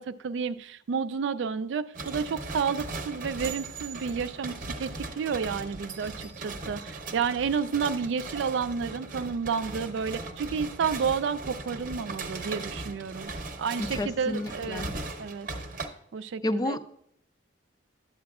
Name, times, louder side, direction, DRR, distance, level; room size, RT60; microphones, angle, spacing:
voice 1, 0.0-13.3 13.6-14.8 15.2-15.5 16.1-16.8, right 6 dB, 70° right, 13 dB, 0.4 m, -31 dB
sound 1, 1.9-15.9, right 3 dB, 45° right, 0.8 m, -38 dB
voice 2, 13.8-14.9 16.4-16.8, left 1 dB, 20° left, 11 dB, 0.4 m, -31 dB
12.0 x 8.6 x 2.4 m, 0.71 s
head